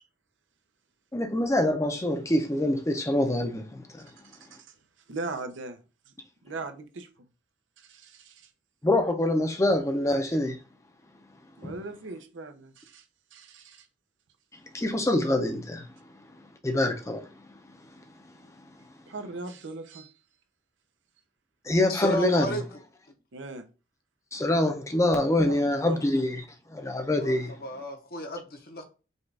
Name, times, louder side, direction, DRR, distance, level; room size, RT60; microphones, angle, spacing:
voice 1, 1.1-4.1 8.8-10.6 11.6-11.7 14.7-15.9 16.6-17.3 21.7-22.6 24.3-26.4 26.7-27.6, left 1 dB, 15° left, 0.6 m, -25 dB
voice 2, 5.1-5.8 6.1-6.2 6.4-7.1 7.8-8.5 11.6-13.0 13.3-13.9 19.1-20.1 23.3-23.6 25.4-26.0, right 3 dB, 80° right, 0.7 m, -39 dB
voice 3, 21.9-22.6 27.2-28.8, equal, 50° left, 0.9 m, -34 dB
5.3 x 2.4 x 3.3 m
head